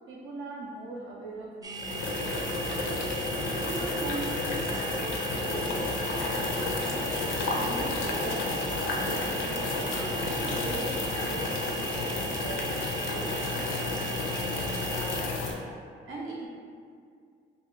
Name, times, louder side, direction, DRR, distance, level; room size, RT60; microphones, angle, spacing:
voice 1, 0.1-2.8 3.4-6.3 6.8-7.1 7.4-9.4 9.9-15.4 16.1-16.5, right 2 dB, 80° right, -2 dB, 0.6 m, -40 dB
sound 1, 1.6-15.2, right 5 dB, 20° right, 0.3 m, -39 dB
sound 2, 1.7-15.5, left 3 dB, 80° left, 0.6 m, -31 dB
2.9 x 2.7 x 3.9 m, 2.2 s
cardioid pair, 90°, 20 cm